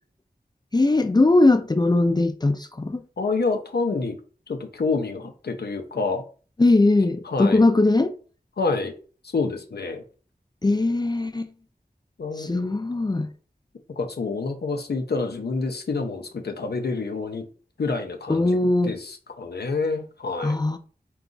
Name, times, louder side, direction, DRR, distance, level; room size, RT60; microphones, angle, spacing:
voice 1, 0.7-3.0 6.6-8.1 10.6-11.5 12.4-13.3 18.3-18.9 20.4-20.8, left 2 dB, 25° left, 0.4 m, -20 dB
voice 2, 3.2-4.2 4.5-6.2 7.2-7.6 8.6-8.9 9.3-10.0 12.2-12.7 14.0-17.4 17.8-18.6 18.8-20.6, left 4 dB, 85° left, 0.6 m, -27 dB
3.9 x 2.3 x 3.8 m
wide cardioid pair, 55°, 16 cm